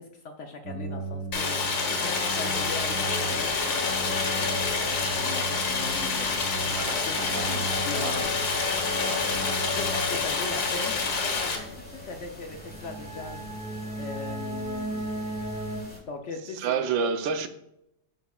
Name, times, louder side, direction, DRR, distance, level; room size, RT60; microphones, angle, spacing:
voice 1, 0.0-8.3 9.3-13.5 14.0-15.1 16.0-16.9, left 4 dB, 65° left, 4 dB, 0.7 m, -39 dB
sound 1, 0.6-15.8, equal, 60° right, 2.8 m, -35 dB
Stream, 1.3-11.6, left 4 dB, 80° left, 2.0 m, -28 dB
sound 2, 2.4-16.0, left 1 dB, 5° left, 1.3 m, -46 dB
voice 2, 6.7-7.6 8.0-8.2 9.0-9.3 9.7-10.0 16.4-17.5, right 6 dB, 85° right, 9 dB, 1.4 m, -31 dB
9.1 x 6.7 x 2.3 m, 0.81 s
omnidirectional pair, 2.0 m